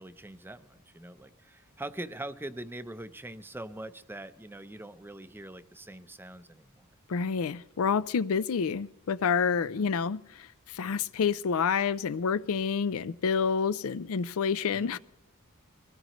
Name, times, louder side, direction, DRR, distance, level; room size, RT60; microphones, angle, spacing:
voice 1, 0.0-6.9 9.7-9.9 14.7-15.0, right 1 dB, 10° right, 0.6 m, -43 dB
voice 2, 7.1-15.0, left 6 dB, 65° left, 0.4 m, -28 dB
24.0 x 17.0 x 3.1 m
head